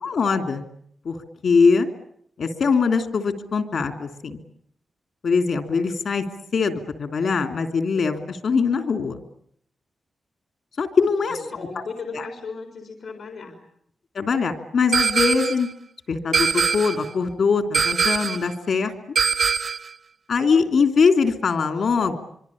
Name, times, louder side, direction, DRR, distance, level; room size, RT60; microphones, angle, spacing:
voice 1, 0.0-0.6 1.0-1.2 1.4-1.9 2.4-4.4 5.2-6.3 6.5-9.2 10.8-11.8 12.1-12.3 14.1-15.7 16.1-18.9 20.3-22.2, left 5 dB, 65° left, 6 dB, 3.0 m, -22 dB
voice 2, 11.2-13.6, left 4 dB, 85° left, 3 dB, 4.1 m, -36 dB
sound 1, 14.9-15.7 16.3-17.1 17.7-18.5 19.2-19.9, right 5 dB, 65° right, 1.0 m, -22 dB
25.0 x 24.5 x 8.6 m, 0.69 s
wide cardioid pair, 140°, 0 cm